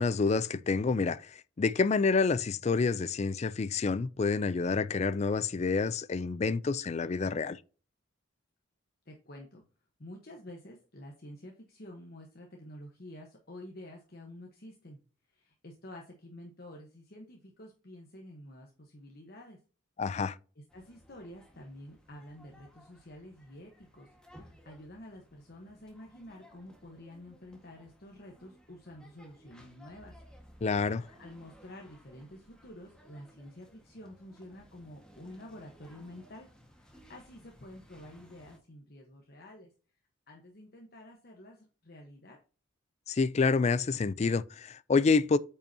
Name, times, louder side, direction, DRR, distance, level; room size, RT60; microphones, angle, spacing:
voice 1, 0.0-7.6 20.0-20.4 30.6-31.1 43.1-45.4, left 4 dB, 35° left, 0.3 m, -28 dB
voice 2, 9.1-9.6 10.0-15.0 15.3-19.6 20.6-30.2 31.2-36.5 36.8-39.7 40.3-42.4, left 1 dB, 50° left, 1.1 m, -49 dB
sound 1, 20.7-38.6, equal, 5° left, 1.5 m, -58 dB
8.8 x 5.5 x 2.8 m
head